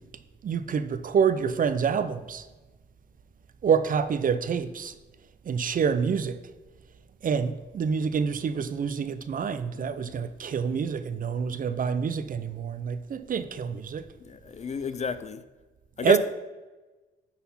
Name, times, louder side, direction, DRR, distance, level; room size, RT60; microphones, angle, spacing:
voice 1, 0.4-2.5 3.6-4.9 5.5-6.4 7.2-14.0 16.0-16.2, right 6 dB, 45° right, 12 dB, 0.6 m, -27 dB
voice 2, 9.8-10.3 14.2-15.4 16.0-16.2, left 6 dB, 35° left, 13 dB, 0.5 m, -32 dB
9.8 x 4.1 x 5.7 m, 1.2 s
cardioid pair, 90°, 20 cm